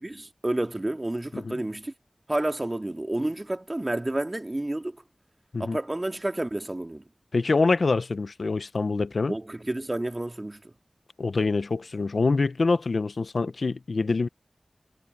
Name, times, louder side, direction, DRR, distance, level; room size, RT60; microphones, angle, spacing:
voice 1, 0.0-1.9 2.3-5.0 5.6-7.0 9.3-10.7, right 1 dB, 35° right, 2.2 m, -30 dB
voice 2, 7.3-9.3 11.2-14.3, left 3 dB, 80° left, 0.9 m, -25 dB
wide cardioid pair, 50°, 0 cm